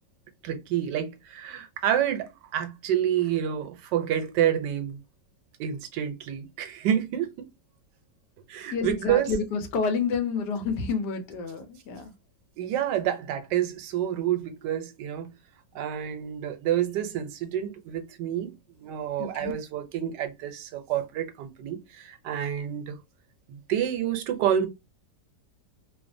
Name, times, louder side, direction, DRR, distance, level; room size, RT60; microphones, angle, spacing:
voice 1, 0.4-5.0 5.6-7.5 8.5-9.3 12.6-15.3 15.7-18.5 18.8-22.9 23.5-24.7, right 10 dB, 85° right, 1.2 m, -28 dB
voice 2, 8.7-12.1 19.2-19.5, left 5 dB, 80° left, 1.3 m, -29 dB
3.1 x 2.1 x 2.5 m
omnidirectional pair, 1.8 m